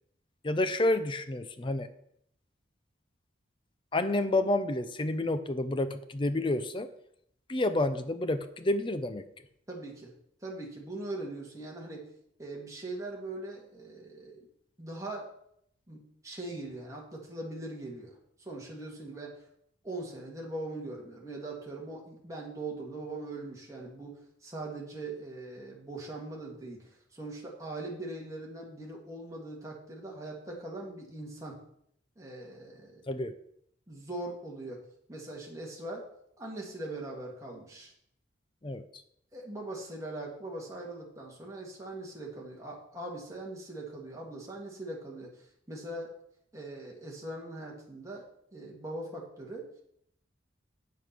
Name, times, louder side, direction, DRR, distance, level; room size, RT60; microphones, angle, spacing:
voice 1, 0.4-1.9 3.9-6.9 7.5-9.2 33.1-33.3 38.6-38.9, left 2 dB, 25° left, 10 dB, 0.5 m, -29 dB
voice 2, 9.7-10.1 10.4-12.0 12.4-14.5 14.8-15.3 15.9-19.3 19.8-24.2 24.4-31.6 32.2-33.0 33.9-34.8 35.1-36.0 36.4-37.9 39.3-46.1 46.5-48.2 48.5-49.7, right 2 dB, 15° right, -2 dB, 2.1 m, -41 dB
8.4 x 7.1 x 6.0 m, 0.71 s
head